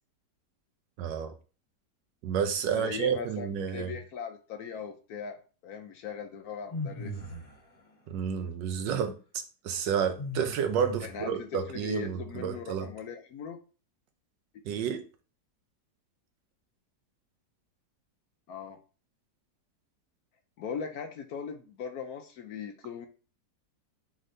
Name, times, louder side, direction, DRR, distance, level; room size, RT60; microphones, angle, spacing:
voice 1, 1.0-1.3 2.2-3.9 8.1-9.2 9.6-12.9 14.6-15.0, right 7 dB, 85° right, 1.3 m, -30 dB
voice 2, 2.7-3.5 3.7-7.1 11.0-13.6 18.5-18.8 20.6-23.1, left 6 dB, 70° left, 0.9 m, -39 dB
sound 1, 6.7-7.6 10.2-11.4, left 1 dB, 30° left, 1.6 m, -37 dB
3.9 x 3.6 x 3.2 m
omnidirectional pair, 1.9 m